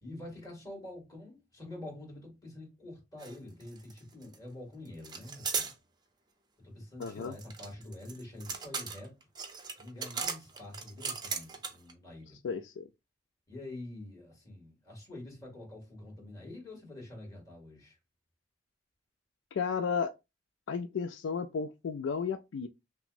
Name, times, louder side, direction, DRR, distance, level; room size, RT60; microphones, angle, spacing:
voice 1, 0.0-5.7 6.6-9.1 9.8-12.4 13.5-18.0, left 1 dB, 20° left, 2.1 m, -46 dB
Oil Lantern Open and Close, 3.2-3.4 3.6-4.4 5.0-5.7 7.0-11.9, right 5 dB, 25° right, 0.6 m, -37 dB
voice 2, 7.0-7.4 12.4-12.9 19.5-20.1 20.7-22.7, left 6 dB, 80° left, 0.4 m, -33 dB
5.8 x 2.0 x 2.6 m
head